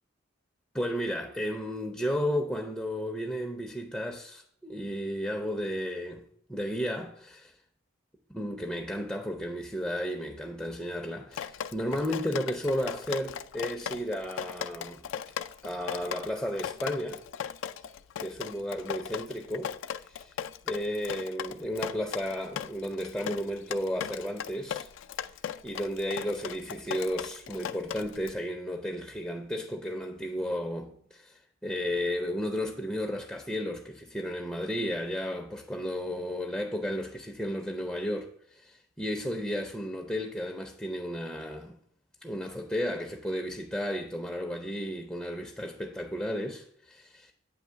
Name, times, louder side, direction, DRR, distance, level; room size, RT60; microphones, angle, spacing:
voice 1, 0.7-7.5 8.3-15.0 15.6-17.2 18.2-19.8 20.0-20.3 20.6-24.9 25.6-41.8 42.2-47.3, equal, 5° left, 0.4 m, -33 dB
Drip, 11.3-28.3, left 9 dB, 75° left, 0.3 m, -37 dB
8.4 x 3.1 x 5.5 m
head